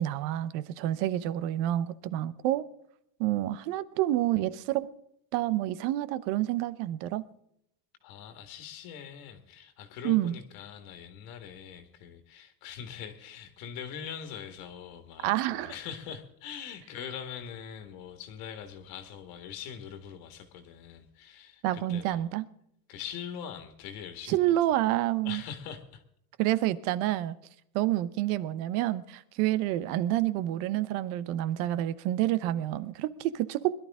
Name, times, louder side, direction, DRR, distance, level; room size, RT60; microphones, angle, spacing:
voice 1, 0.0-2.6 3.2-4.8 5.3-7.2 10.0-10.3 15.2-15.7 21.6-22.5 24.3-25.4 26.4-27.3 27.7-33.8, right 14 dB, 60° right, 0.9 m, -28 dB
voice 2, 8.0-22.2 22.9-24.6 25.2-26.0, left 8 dB, 55° left, 1.9 m, -42 dB
21.0 x 12.0 x 3.6 m
cardioid pair, 150°, 43 cm